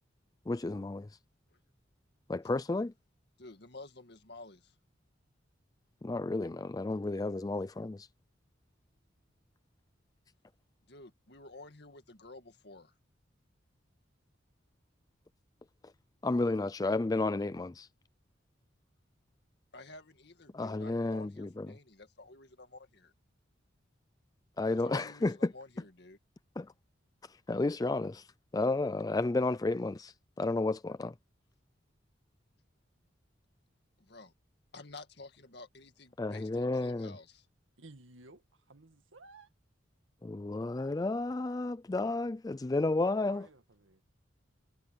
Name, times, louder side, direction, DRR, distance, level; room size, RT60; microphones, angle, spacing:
voice 1, 0.5-1.1 2.3-2.9 6.0-8.1 16.2-17.9 20.5-21.8 24.6-25.5 26.6-26.7 27.2-28.3 28.5-31.1 36.2-37.1 40.2-43.5, left 2 dB, 20° left, 0.3 m, -32 dB
voice 2, 3.4-4.7 10.9-12.9 19.7-23.1 24.8-26.2 34.0-34.3 34.7-37.5, left 2 dB, 55° left, 2.1 m, -51 dB
voice 3, 37.8-39.5 43.2-44.0, right 3 dB, 85° right, 2.0 m, -55 dB
head